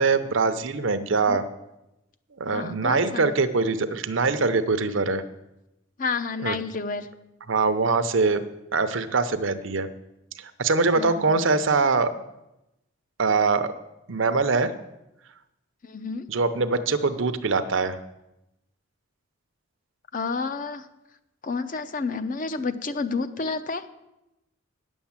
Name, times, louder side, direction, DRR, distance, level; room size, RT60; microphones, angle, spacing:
voice 1, 0.0-1.4 2.4-5.2 6.4-6.6 7.5-8.4 8.7-9.9 10.4-12.1 13.2-13.7 14.1-14.7 16.3-18.0, right 4 dB, 65° right, 11 dB, 0.7 m, -23 dB
voice 2, 2.5-3.3 6.0-7.1 11.0-11.4 15.8-16.3 20.1-20.9 21.4-23.8, left 4 dB, 40° left, 10 dB, 0.6 m, -30 dB
9.6 x 7.2 x 7.3 m, 0.92 s
head